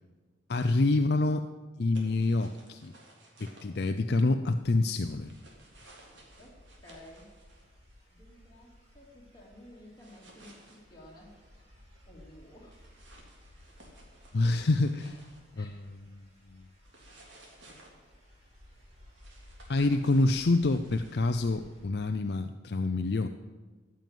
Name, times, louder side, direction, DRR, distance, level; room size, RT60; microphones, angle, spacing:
voice 1, 0.5-1.5 1.8-2.9 3.4-5.3 14.3-15.2 15.6-15.7 19.7-23.3, left 2 dB, 55° left, 7 dB, 0.5 m, -27 dB
sound 1, 1.9-3.6 5.0-7.7 10.0-10.8 12.7-15.5 16.8-17.9 19.2-21.5, right 1 dB, 75° right, 3.4 m, -57 dB
sound 2, 5.0-21.9, left 1 dB, 35° right, 3.3 m, -57 dB
voice 2, 6.4-7.3 8.1-11.4 12.0-12.9 15.5-15.9, left 1 dB, 20° left, -4 dB, 3.2 m, -53 dB
14.5 x 7.6 x 9.2 m, 1.4 s
head